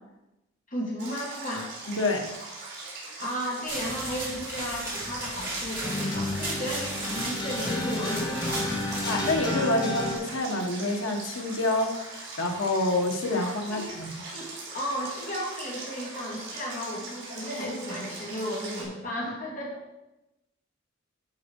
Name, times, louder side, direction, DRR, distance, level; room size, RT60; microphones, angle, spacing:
voice 1, 0.7-1.7 3.2-8.8 13.7-14.0 14.3-19.8, equal, 40° left, -3 dB, 2.4 m, -34 dB
Stream, 1.0-18.8, right 3 dB, 60° right, 4.0 m, -41 dB
voice 2, 1.9-2.3 9.0-14.1, left 2 dB, 75° left, 2 dB, 1.5 m, -27 dB
sound 1, 3.7-9.3, right 1 dB, 15° right, 3.9 m, -36 dB
sound 2, 3.8-10.2, left 1 dB, 20° left, 1.9 m, -33 dB
11.5 x 5.7 x 4.7 m, 0.95 s
head